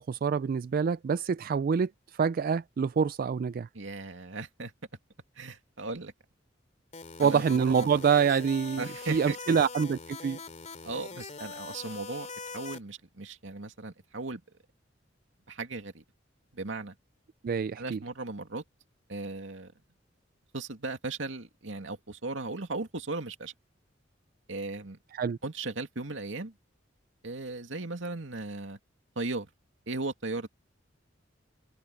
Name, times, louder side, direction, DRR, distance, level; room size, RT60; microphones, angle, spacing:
voice 1, 0.0-3.7 7.2-8.8 9.1-10.4 17.4-18.0 25.1-25.4, right 6 dB, 50° right, 0.3 m, -26 dB
voice 2, 3.7-4.7 5.4-6.1 7.2-8.0 8.8-9.6 10.8-12.3 12.5-14.4 15.5-16.0 16.5-17.0 17.8-18.6 19.1-19.7 20.5-23.5 24.5-25.0 25.4-26.5 27.2-28.8 29.2-29.5 29.9-30.5, right 3 dB, 80° right, 2.4 m, -37 dB
sound 1, 6.9-12.8, left 4 dB, 40° left, 2.6 m, -42 dB
head